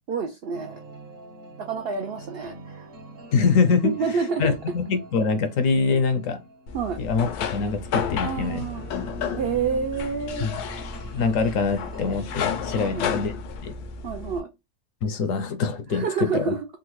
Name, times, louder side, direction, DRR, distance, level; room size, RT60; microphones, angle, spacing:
voice 1, 0.1-0.8 1.7-2.9 3.8-4.5 6.7-7.0 8.2-8.8 9.4-10.5 12.8-13.0 14.0-14.5 15.9-16.7, right 5 dB, 75° right, 0.5 m, -28 dB
sound 1, 0.5-13.3, right 2 dB, 50° right, 0.8 m, -44 dB
voice 2, 3.3-6.4 7.0-8.7 10.4-10.5 11.1-13.3 13.6-13.7 15.0-16.5, left 5 dB, 70° left, 0.9 m, -24 dB
sound 2, 6.7-14.4, left 6 dB, 85° left, 1.2 m, -32 dB
3.6 x 2.1 x 3.0 m
omnidirectional pair, 1.6 m